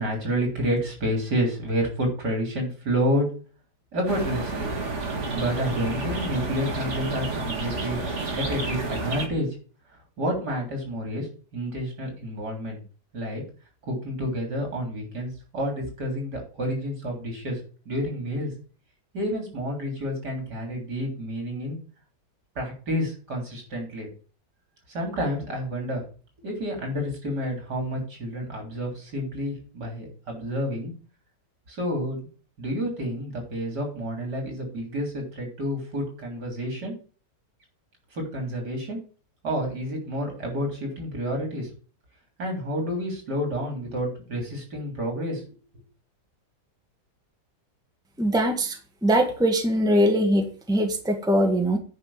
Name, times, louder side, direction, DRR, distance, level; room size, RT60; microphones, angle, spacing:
voice 1, 0.0-3.3 3.9-4.7 5.3-8.0 8.3-9.5 10.2-11.3 11.5-12.8 13.1-13.4 13.8-17.6 17.9-18.5 19.1-21.8 22.6-24.1 24.9-26.0 26.4-30.9 31.7-32.3 32.6-36.9 38.1-39.0 39.4-41.7 42.4-45.4 45.7-45.8, equal, 65° right, 1 dB, 4.0 m, -29 dB
sound 1, 4.1-9.3, right 3 dB, 40° right, 2.1 m, -30 dB
voice 2, 48.2-51.8, equal, ahead, 3 dB, 1.6 m, -22 dB
9.7 x 5.6 x 7.2 m, 0.39 s
omnidirectional pair, 1.9 m